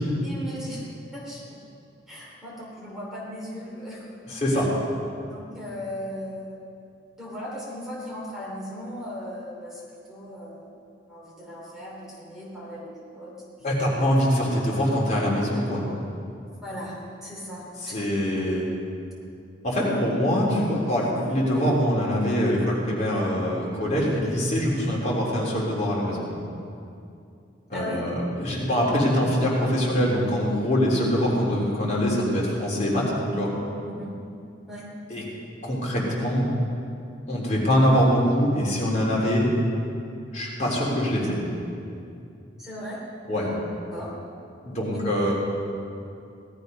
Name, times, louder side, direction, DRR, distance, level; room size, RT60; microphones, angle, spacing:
voice 1, 0.2-0.8 1.1-1.6 2.1-4.1 4.5-4.7 5.3-6.6 7.2-10.8 11.1-13.4 16.6-18.1 19.7-20.1 27.7-28.0 33.8-34.1 34.7-34.9 42.6-43.0 43.9-44.2 44.9-45.0, equal, ahead, -6 dB, 2.9 m, -37 dB
voice 2, 4.3-4.7 13.6-15.8 17.8-18.7 19.6-26.3 27.7-33.1 33.4-33.5 35.1-35.2 35.6-36.5 37.3-39.5 40.3-41.4 43.3-43.5 44.6-45.3, equal, 40° left, -4 dB, 3.6 m, -23 dB
18.0 x 13.0 x 5.4 m, 2.5 s
head